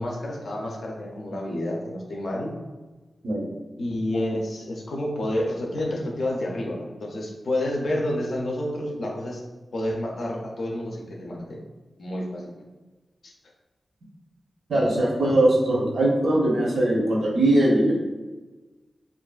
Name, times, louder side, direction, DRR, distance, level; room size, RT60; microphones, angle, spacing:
voice 1, 0.0-2.5 3.8-9.4 9.7-11.6 12.0-12.5 13.2-13.3, left 1 dB, 70° left, -1 dB, 0.4 m, -29 dB
voice 2, 14.7-17.9, right 1 dB, 75° right, -3 dB, 0.7 m, -21 dB
2.5 x 2.3 x 2.2 m, 1.2 s
wide cardioid pair, 115°, 0 cm